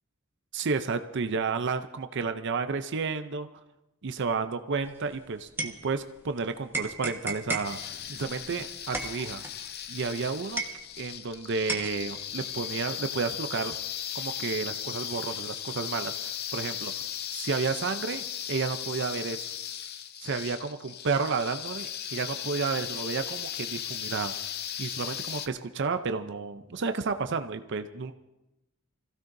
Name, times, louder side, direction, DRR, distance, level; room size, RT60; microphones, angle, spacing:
voice 1, 0.5-3.5 4.0-9.4 9.9-10.6 11.0-13.8 14.1-16.9 17.3-19.5 20.2-24.3 24.8-28.1, right 4 dB, 55° right, 8 dB, 0.6 m, -31 dB
sound 1, 4.9-6.3 6.7-11.3 11.7-12.8, right 2 dB, 10° right, 1.2 m, -36 dB
sound 2, 7.6-25.5, left 9 dB, 45° left, 0.6 m, -37 dB
25.5 x 15.5 x 2.6 m, 0.93 s
head